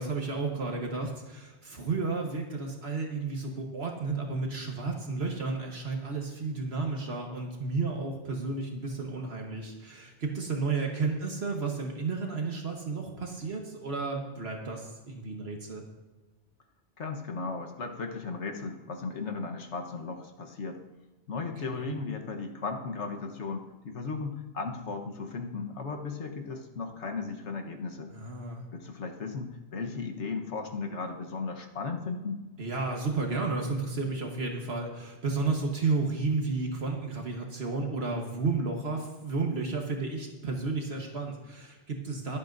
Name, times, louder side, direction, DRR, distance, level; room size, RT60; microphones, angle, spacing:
voice 1, 0.0-15.8 21.7-21.9 28.1-28.6 32.6-42.4, right 4 dB, 65° right, 1 dB, 1.5 m, -32 dB
voice 2, 17.0-20.8 21.3-28.1 28.7-32.4, left 4 dB, 80° left, 4 dB, 1.5 m, -36 dB
25.0 x 8.3 x 2.6 m, 1.2 s
omnidirectional pair, 1.2 m